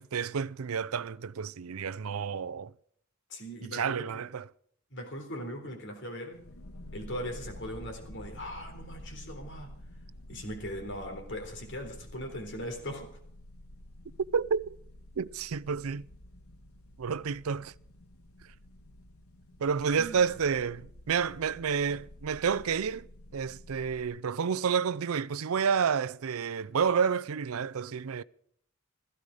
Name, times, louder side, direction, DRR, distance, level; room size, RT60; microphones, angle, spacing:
voice 1, 0.0-2.7 3.7-4.5 14.3-14.8 15.2-16.1 17.0-17.7 19.6-23.1 23.3-28.2, right 6 dB, 80° right, 0.5 m, -30 dB
voice 2, 3.3-4.2 4.9-6.4 6.9-9.7 10.3-13.1 20.0-20.4, equal, 55° left, 3.8 m, -39 dB
sound 1, 6.3-24.0, left 1 dB, 80° left, 1.8 m, -49 dB
16.0 x 14.5 x 5.0 m
head